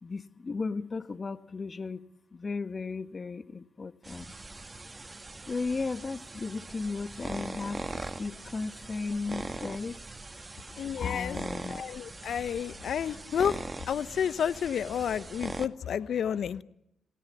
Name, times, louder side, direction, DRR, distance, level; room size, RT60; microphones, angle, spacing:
voice 1, 0.0-4.3 5.5-7.9 8.2-10.0 11.0-11.8, left 4 dB, 40° left, 1.5 m, -35 dB
sound 1, 4.0-15.7, right 2 dB, 25° right, 1.8 m, -41 dB
voice 2, 10.8-11.4 11.7-13.6 13.9-16.6, left 8 dB, 65° left, 0.9 m, -30 dB
27.5 x 18.5 x 8.3 m
supercardioid pair, 55°, 0 cm